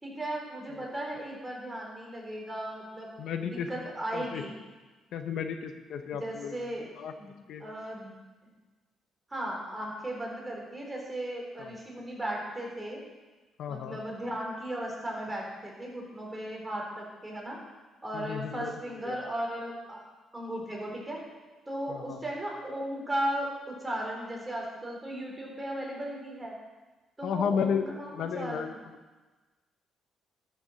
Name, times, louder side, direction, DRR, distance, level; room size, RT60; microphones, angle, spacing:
voice 1, 0.0-3.1 3.4-4.5 6.1-6.9 7.2-7.3 7.6-8.2 9.3-13.0 13.7-17.6 18.0-20.0 20.3-21.2 21.7-26.6 27.2-28.8, right 1 dB, 15° right, -2 dB, 4.1 m, -36 dB
voice 2, 3.2-4.4 5.1-6.7 7.0-7.6 11.6-11.7 13.6-14.0 18.1-18.7 19.0-19.2 21.9-22.2 27.2-28.8, left 7 dB, 70° left, 7 dB, 0.9 m, -33 dB
12.5 x 6.9 x 6.4 m, 1.3 s
cardioid pair, 85°, 0 cm